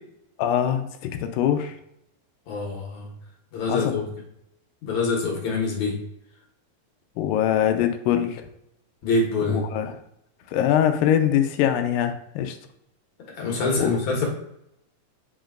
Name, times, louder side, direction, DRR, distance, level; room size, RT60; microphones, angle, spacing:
voice 1, 0.4-0.9 1.2-1.8 3.7-4.0 7.2-8.4 9.5-9.9 10.5-12.6 13.8-13.9, left 10 dB, 90° left, 6 dB, 2.3 m, -22 dB
voice 2, 2.5-3.1 3.5-4.0 4.8-5.9 9.0-9.6 13.4-14.3, left 3 dB, 60° left, -1 dB, 2.7 m, -25 dB
8.0 x 5.1 x 2.5 m, 0.77 s
omnidirectional pair, 4.0 m